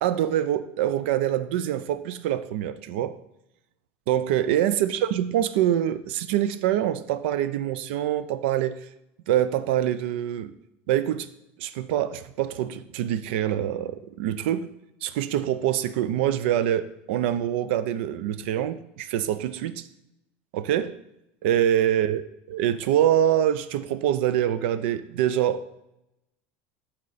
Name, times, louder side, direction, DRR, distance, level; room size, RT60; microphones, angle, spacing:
voice 1, 0.0-3.2 4.1-8.7 9.3-10.5 10.9-11.3 11.6-14.7 15.0-19.9 20.5-20.9 21.4-22.2 22.5-25.8, right 11 dB, 75° right, 13 dB, 0.5 m, -25 dB
12.5 x 4.3 x 4.1 m, 0.85 s
cardioid pair, 170°, 6 cm